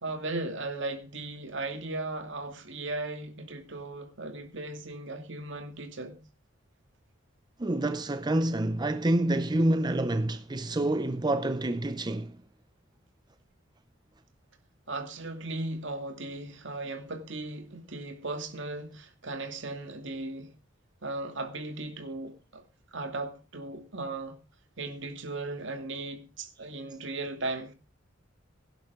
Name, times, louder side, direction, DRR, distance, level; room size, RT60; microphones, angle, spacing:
voice 1, 0.0-6.2 14.9-20.5 21.0-22.6 22.9-24.4 24.8-27.7, right 2 dB, 65° right, 2.5 m, -37 dB
voice 2, 7.6-12.4, right 1 dB, 20° right, 0.6 m, -27 dB
17.5 x 11.0 x 3.7 m
head